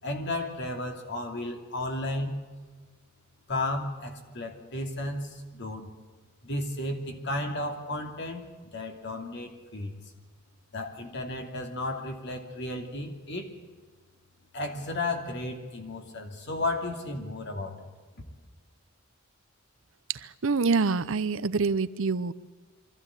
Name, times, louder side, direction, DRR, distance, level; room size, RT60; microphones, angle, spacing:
voice 1, 0.0-2.3 3.5-5.9 6.4-9.9 10.7-13.5 14.5-17.9, left 2 dB, 55° left, 4 dB, 2.9 m, -33 dB
voice 2, 20.1-22.3, right 4 dB, 65° right, 15 dB, 0.7 m, -26 dB
23.5 x 15.0 x 8.9 m, 1.4 s
head